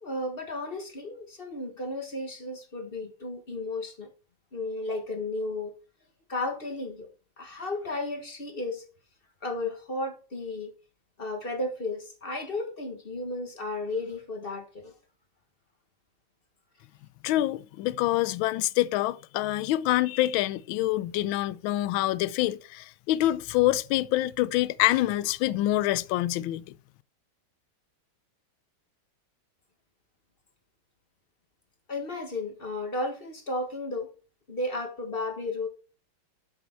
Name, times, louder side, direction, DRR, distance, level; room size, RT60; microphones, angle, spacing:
voice 1, 0.0-4.1 4.5-5.7 6.3-7.1 7.4-8.8 9.4-10.7 11.2-14.9 31.9-34.1 34.5-35.7, left 2 dB, 30° left, 1.3 m, -33 dB
voice 2, 17.2-26.6, left 15 dB, 80° left, 1.3 m, -26 dB
7.8 x 6.8 x 4.3 m
omnidirectional pair, 2.3 m